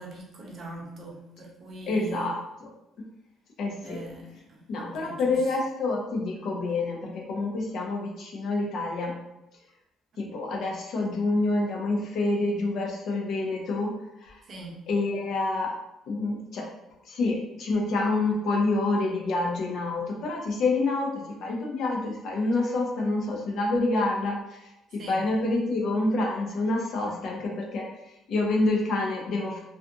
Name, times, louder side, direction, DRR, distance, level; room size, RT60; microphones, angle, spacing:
voice 1, 0.0-2.4 3.8-5.6 14.4-14.8 24.9-25.3, right 2 dB, 50° right, -2 dB, 0.8 m, -42 dB
voice 2, 1.9-2.4 3.6-4.0 4.7-9.1 10.2-13.9 14.2-14.3 14.9-15.7 16.1-16.7 17.1-24.4 24.9-27.8 28.3-29.6, left 2 dB, 65° left, -1 dB, 0.6 m, -27 dB
2.5 x 2.4 x 2.5 m, 0.89 s
supercardioid pair, 75°, 0 cm